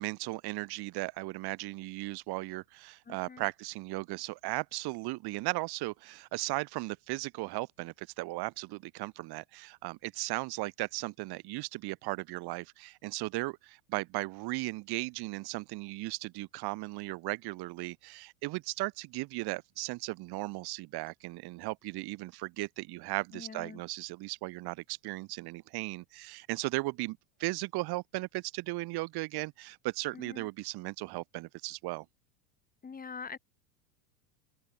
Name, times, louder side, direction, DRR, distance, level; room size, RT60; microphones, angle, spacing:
voice 1, 0.0-32.1, right 21 dB, 50° right, 7.1 m, -36 dB
voice 2, 3.1-3.4 23.3-23.8 30.1-30.5 32.8-33.4, left 5 dB, 20° left, 5.7 m, -44 dB
open air
supercardioid pair, 125°, 48 cm